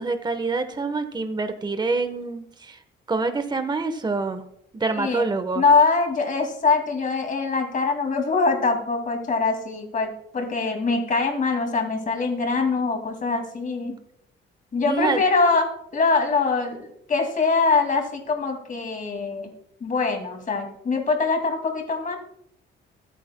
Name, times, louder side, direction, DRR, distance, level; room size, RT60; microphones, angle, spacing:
voice 1, 0.0-2.8 3.1-4.4 4.7-5.6 14.8-15.2, right 3 dB, 20° right, 8 dB, 1.1 m, -26 dB
voice 2, 4.9-5.2 5.5-14.0 14.7-15.7 15.9-19.5 19.8-22.2, left 4 dB, 40° left, 4 dB, 2.3 m, -23 dB
21.5 x 9.4 x 2.2 m, 0.72 s
cardioid pair, 90°, 20 cm